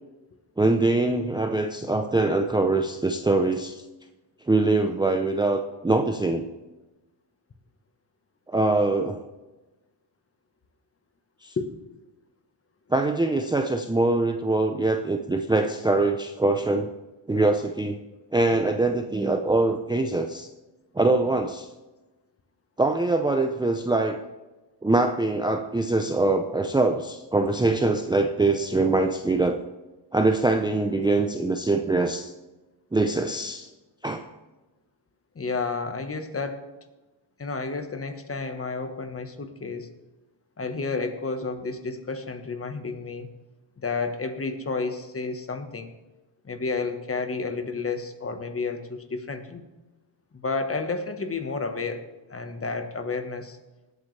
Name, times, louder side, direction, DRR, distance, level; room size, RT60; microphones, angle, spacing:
voice 1, 0.6-3.8 4.5-6.4 8.5-9.2 11.4-11.5 12.9-16.9 17.3-18.0 18.3-20.5 21.0-21.7 22.8-24.2 24.8-29.6 30.1-32.3 32.9-33.7 34.0-34.2, right 2 dB, 10° right, 5 dB, 0.6 m, -23 dB
voice 2, 35.3-36.6 37.4-39.9 40.6-43.3 43.8-45.9 46.4-49.6 50.3-53.6, left 4 dB, 30° left, 8 dB, 1.3 m, -31 dB
19.5 x 8.2 x 3.3 m, 1.1 s
cardioid pair, 95°, 47 cm